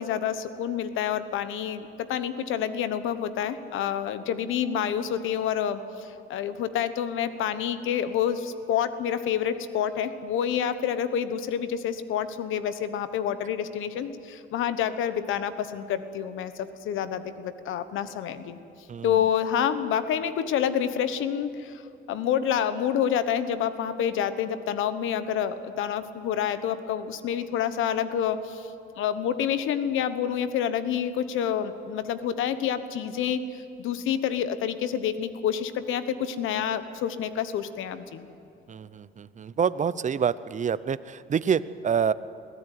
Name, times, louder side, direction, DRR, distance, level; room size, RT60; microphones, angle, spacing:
voice 1, 0.0-18.6 19.0-21.8 22.1-28.7 29.0-38.3, left 9 dB, 85° left, 12 dB, 1.2 m, -28 dB
voice 2, 38.7-42.1, right 7 dB, 40° right, 16 dB, 0.7 m, -27 dB
22.0 x 16.0 x 9.2 m, 2.6 s
cardioid pair, 90°, 20 cm